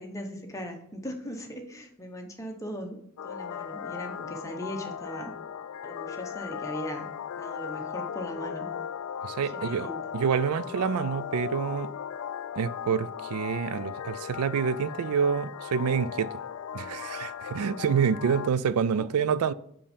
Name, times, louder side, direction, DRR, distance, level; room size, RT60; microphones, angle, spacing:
voice 1, 0.0-3.0 3.2-5.3 5.8-7.1 7.4-8.7 9.5-10.0 18.9-19.1, equal, 15° left, 0.9 m, -39 dB
sound 1, 3.2-18.5, left 8 dB, 70° left, 0.3 m, -37 dB
voice 2, 9.2-9.9 10.1-11.9 12.6-16.4 16.7-19.5, right 7 dB, 85° right, 0.4 m, -27 dB
5.5 x 5.4 x 5.0 m
head